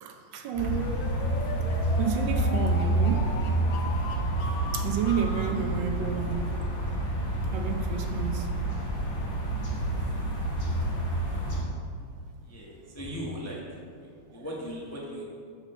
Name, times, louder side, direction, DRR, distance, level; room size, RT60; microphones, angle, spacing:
voice 1, 0.0-0.9 2.0-3.3 4.7-6.6 7.5-8.5 14.3-14.4, right 8 dB, 75° right, 5 dB, 1.3 m, -31 dB
sound 1, 0.5-11.6, right 1 dB, 45° left, 2.3 m, -28 dB
sound 2, 0.6-5.6, left 4 dB, 65° left, 0.9 m, -39 dB
voice 2, 12.4-13.6 14.0-15.2, equal, 15° left, -4 dB, 0.6 m, -38 dB
6.4 x 5.2 x 6.5 m, 2.2 s
omnidirectional pair, 2.1 m